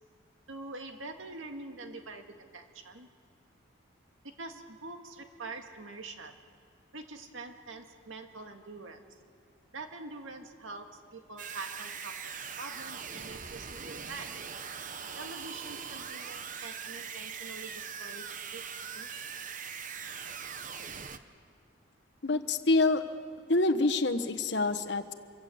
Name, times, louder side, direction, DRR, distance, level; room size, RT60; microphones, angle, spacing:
voice 1, 0.5-3.1 4.2-6.5 6.9-9.2 9.7-14.6 15.1-18.6 18.9-19.1, right 3 dB, 85° right, 5 dB, 2.0 m, -45 dB
sound 1, 11.4-21.2, right 6 dB, 40° right, 1.0 m, -41 dB
voice 2, 22.2-23.0 23.5-25.1, left 2 dB, 60° left, 7 dB, 1.2 m, -26 dB
26.0 x 24.0 x 7.9 m, 2.3 s
head